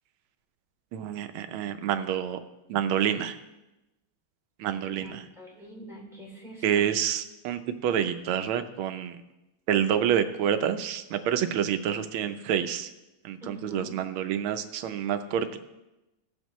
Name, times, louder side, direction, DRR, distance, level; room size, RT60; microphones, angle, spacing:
voice 1, 0.9-2.4 2.7-3.4 4.6-5.2 6.6-9.2 9.7-12.9 13.2-15.6, right 9 dB, 90° right, 9 dB, 1.5 m, -28 dB
voice 2, 4.8-6.9 13.4-13.9, right 1 dB, ahead, -5 dB, 2.9 m, -44 dB
16.0 x 7.3 x 3.1 m, 0.98 s
omnidirectional pair, 2.2 m